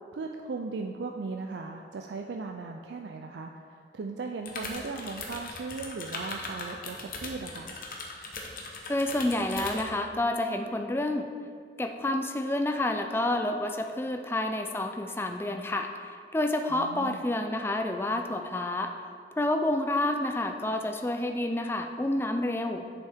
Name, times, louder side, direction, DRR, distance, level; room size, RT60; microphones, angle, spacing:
voice 1, 0.1-7.8 16.7-17.2, right 4 dB, 80° right, 3 dB, 0.4 m, -37 dB
sound 1, 4.5-9.9, left 3 dB, 50° left, 1.0 m, -39 dB
voice 2, 8.9-11.3 11.8-15.9 16.3-18.9 19.4-22.9, left 1 dB, 15° left, 5 dB, 0.4 m, -29 dB
8.1 x 6.9 x 3.6 m, 2.2 s
head